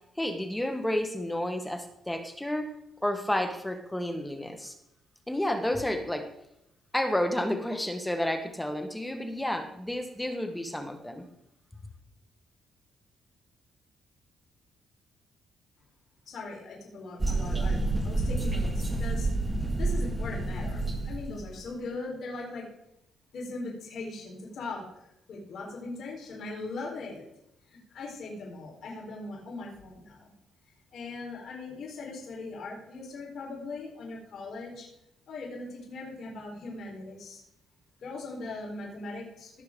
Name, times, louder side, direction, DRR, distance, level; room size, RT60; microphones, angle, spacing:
voice 1, 0.2-2.7 3.0-4.7 5.3-6.3 6.9-11.2, left 1 dB, 5° left, 6 dB, 1.3 m, -31 dB
voice 2, 16.3-19.3 19.8-22.6 23.3-27.2 27.7-30.3 30.9-34.9 35.3-37.4 38.0-39.6, left 3 dB, 65° left, -2 dB, 3.9 m, -40 dB
sound 1, 17.2-21.5, right 2 dB, 20° right, 1.6 m, -29 dB
17.5 x 6.5 x 3.7 m, 0.80 s
cardioid pair, 90°, 0 cm